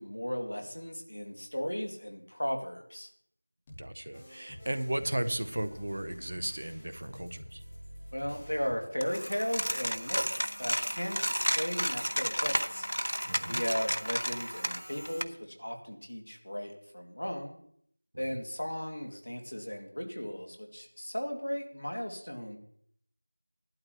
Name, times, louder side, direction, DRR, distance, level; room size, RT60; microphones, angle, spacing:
voice 1, 0.0-3.1 8.1-12.9 13.5-17.6 18.2-22.6, equal, 60° left, 3 dB, 2.2 m, -36 dB
sound 1, 3.7-8.7, equal, 5° left, 1.0 m, -48 dB
voice 2, 3.8-7.6 13.2-13.6 18.1-18.4, right 1 dB, 40° right, 10 dB, 0.8 m, -35 dB
Coin (dropping), 9.0-15.2, equal, 80° right, 0.7 m, -32 dB
17.0 x 12.0 x 3.0 m, 0.66 s
figure-of-eight pair, 175°, 0 cm